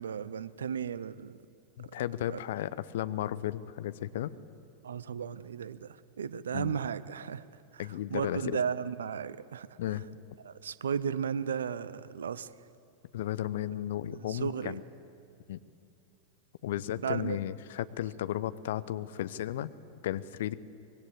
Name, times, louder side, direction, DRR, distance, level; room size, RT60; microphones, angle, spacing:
voice 1, 0.0-1.4 2.3-2.4 4.8-7.4 7.7-9.7 10.4-12.5 14.1-14.8 17.0-17.4, right 7 dB, 65° right, 17 dB, 0.7 m, -35 dB
voice 2, 1.8-4.3 6.5-6.8 7.8-8.6 9.8-10.1 13.1-14.8 15.5-15.6 16.6-19.7 20.0-20.6, left 12 dB, 55° left, 14 dB, 0.8 m, -34 dB
24.5 x 21.0 x 8.2 m, 2.6 s
figure-of-eight pair, 90°, 0 cm